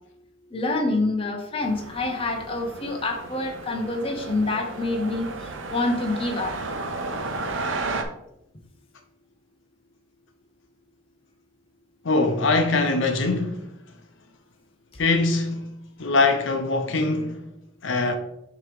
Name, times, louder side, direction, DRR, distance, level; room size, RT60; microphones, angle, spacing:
voice 1, 0.5-5.3 5.7-6.6, left 2 dB, 25° left, 0.7 m, -26 dB
sound 1, 1.6-8.0, right 3 dB, 70° right, 0.8 m, -33 dB
voice 2, 12.0-13.6 15.0-15.7 16.0-17.4 17.8-18.1, left 3 dB, 65° left, 0.7 m, -22 dB
6.5 x 3.0 x 5.1 m
head